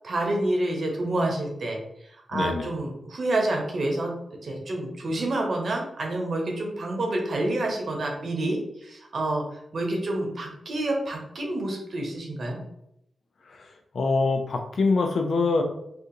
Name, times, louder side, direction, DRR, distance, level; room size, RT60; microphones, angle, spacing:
voice 1, 0.0-1.8 2.3-4.1 4.4-9.4 9.7-12.6, right 1 dB, 65° right, 1 dB, 0.8 m, -28 dB
voice 2, 2.3-2.7 13.5-15.6, left 3 dB, 70° left, 5 dB, 0.5 m, -25 dB
2.7 x 2.5 x 3.7 m, 0.79 s
cardioid pair, 60°, 0 cm